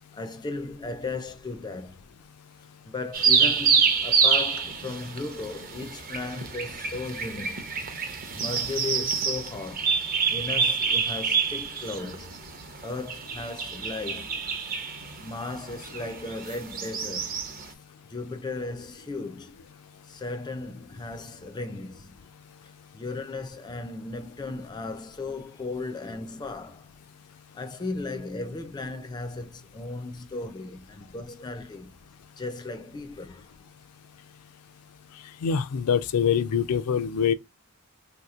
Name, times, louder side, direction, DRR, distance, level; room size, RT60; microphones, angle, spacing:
voice 1, 0.1-2.0 2.8-7.6 7.9-9.9 10.3-12.3 12.8-14.3 15.2-17.4 18.1-19.5 20.1-22.2 22.9-26.9 27.5-32.0 32.4-33.5, left 3 dB, 20° left, 0.3 m, -36 dB
sound 1, 3.1-17.7, right 5 dB, 40° right, 0.6 m, -27 dB
voice 2, 35.4-37.3, left 7 dB, 85° left, 0.4 m, -24 dB
3.5 x 2.8 x 2.3 m
head